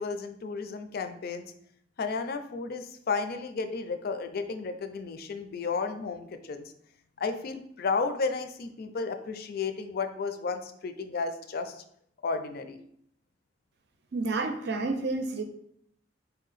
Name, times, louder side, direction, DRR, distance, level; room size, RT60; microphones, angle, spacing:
voice 1, 0.0-1.5 2.0-6.7 7.2-11.8 12.2-12.8, left 4 dB, 55° left, 8 dB, 0.4 m, -33 dB
voice 2, 14.1-15.4, right 3 dB, 60° right, 6 dB, 0.5 m, -30 dB
4.3 x 2.8 x 4.0 m, 0.68 s
head